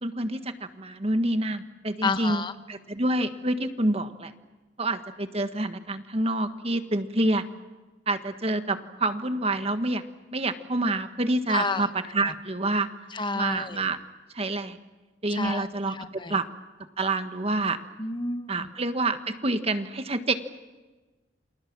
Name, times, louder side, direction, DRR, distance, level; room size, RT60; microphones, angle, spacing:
voice 1, 0.0-4.3 4.8-7.4 8.1-10.0 10.3-12.9 13.3-14.0 14.3-14.8 15.2-16.4 17.0-17.8 18.5-20.3, right 2 dB, 35° right, 9 dB, 1.6 m, -27 dB
voice 2, 2.0-2.5 11.5-11.9 13.1-13.8 15.3-15.7 15.9-16.3 18.0-18.7, left 3 dB, 25° left, 10 dB, 1.1 m, -30 dB
29.0 x 27.5 x 6.2 m, 1.2 s
head